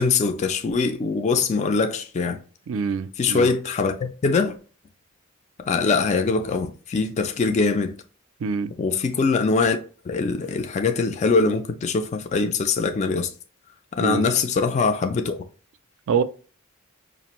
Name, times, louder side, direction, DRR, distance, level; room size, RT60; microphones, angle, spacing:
voice 1, 0.0-2.4 3.2-4.6 5.7-7.9 8.8-9.8 10.1-13.3 14.0-15.4, left 4 dB, 30° left, 0.3 m, -22 dB
voice 2, 2.7-3.5 8.4-8.7 14.0-14.2 16.1-16.2, right 6 dB, 65° right, 0.4 m, -25 dB
5.1 x 2.5 x 2.9 m
head